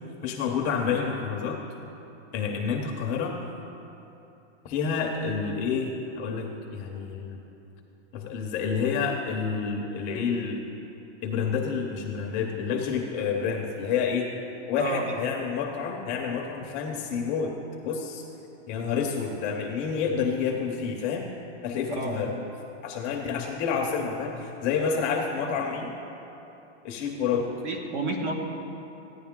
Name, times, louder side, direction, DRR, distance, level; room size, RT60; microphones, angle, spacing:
voice 1, 0.2-1.6 2.3-3.4 4.6-7.4 8.1-10.7 11.2-14.3 14.7-17.5 17.8-18.2 18.7-21.3 21.6-22.4 22.8-25.9 26.8-27.5, left 6 dB, 20° left, 1 dB, 0.6 m, -29 dB
voice 2, 14.8-15.2 21.9-22.3 27.6-28.4, right 2 dB, 70° right, 1 dB, 1.8 m, -30 dB
15.0 x 9.8 x 3.6 m, 3.0 s
supercardioid pair, 165°, 36 cm